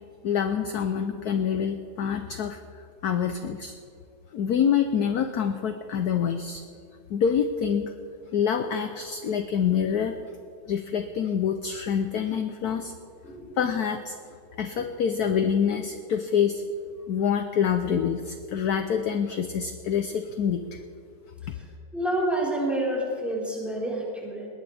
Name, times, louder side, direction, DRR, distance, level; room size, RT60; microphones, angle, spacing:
voice 1, 0.2-2.6 3.0-3.7 4.3-6.6 7.1-7.9 8.3-10.2 10.7-12.9 13.6-14.2 14.6-16.6 17.1-20.8 21.5-21.6, left 7 dB, 65° left, 7 dB, 1.1 m, -26 dB
voice 2, 13.2-13.6 21.9-24.5, right 1 dB, ahead, -5 dB, 4.4 m, -28 dB
20.5 x 19.0 x 3.5 m, 2.4 s
omnidirectional pair, 2.1 m